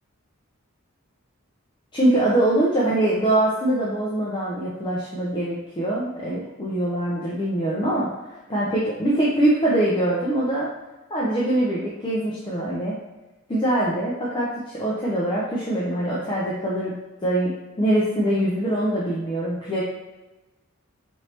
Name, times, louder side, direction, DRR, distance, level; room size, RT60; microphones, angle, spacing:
voice 1, 1.9-8.1 8.5-10.7 11.1-12.9 13.5-16.9 17.2-17.5 17.8-19.8, right 1 dB, 20° left, -6 dB, 0.6 m, -23 dB
4.4 x 3.2 x 2.9 m, 1.1 s
head